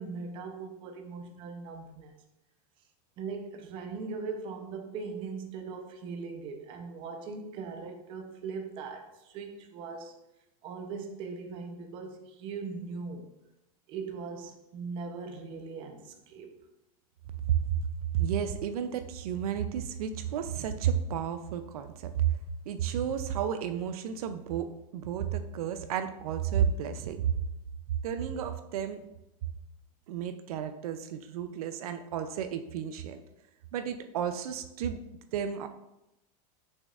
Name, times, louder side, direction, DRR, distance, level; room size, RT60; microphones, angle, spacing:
voice 1, 0.0-2.2 3.2-10.1 10.6-13.3 13.9-16.5, right 4 dB, 25° right, 0.7 m, -40 dB
voice 2, 18.1-22.3 22.7-27.2 28.0-29.1 30.1-33.2 33.7-35.0 35.3-35.7, right 9 dB, 75° right, 0.5 m, -32 dB
6.3 x 6.2 x 2.4 m
supercardioid pair, 170°, 19 cm